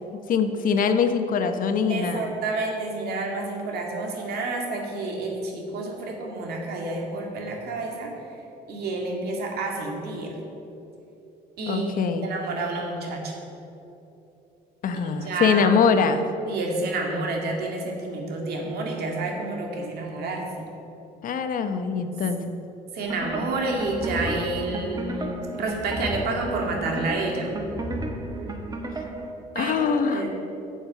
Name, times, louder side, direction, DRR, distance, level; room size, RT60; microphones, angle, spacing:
voice 1, 0.3-2.3 11.7-12.2 14.8-16.2 21.2-22.4 29.5-30.2, left 6 dB, 55° left, 8 dB, 0.9 m, -23 dB
voice 2, 1.9-8.2 8.7-10.4 11.6-11.9 12.2-13.4 14.9-15.8 16.5-20.7 22.9-27.6 29.5-30.3, right 2 dB, 70° right, 1 dB, 2.2 m, -29 dB
sound 1, 23.0-29.3, right 2 dB, 20° right, 1.1 m, -33 dB
9.3 x 7.5 x 6.8 m, 2.9 s
cardioid pair, 110°, 17 cm